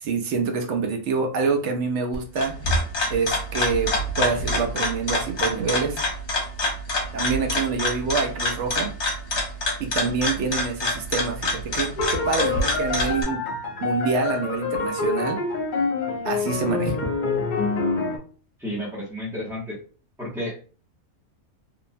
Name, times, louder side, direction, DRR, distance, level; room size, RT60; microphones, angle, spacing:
voice 1, 0.0-2.5 3.1-6.0 7.1-8.9 9.8-13.5 13.8-15.4 16.2-17.0, right 4 dB, 65° right, 4 dB, 0.8 m, -26 dB
sound 1, 2.1-13.2, left 1 dB, 60° left, 1.0 m, -26 dB
sound 2, 12.0-18.2, left 4 dB, 80° left, 0.4 m, -26 dB
voice 2, 18.6-19.8 20.2-20.5, left 1 dB, 5° right, -8 dB, 0.5 m, -31 dB
2.9 x 2.1 x 2.5 m, 0.39 s
omnidirectional pair, 1.4 m